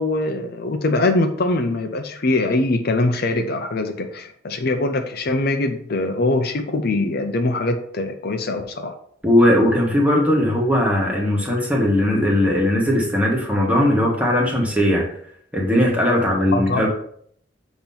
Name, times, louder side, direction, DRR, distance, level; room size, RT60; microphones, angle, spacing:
voice 1, 0.0-8.9 16.5-16.9, left 2 dB, 55° left, 5 dB, 0.6 m, -22 dB
voice 2, 9.2-15.1 15.5-16.9, left 1 dB, 5° right, -2 dB, 1.5 m, -18 dB
7.1 x 3.0 x 5.5 m, 0.64 s
head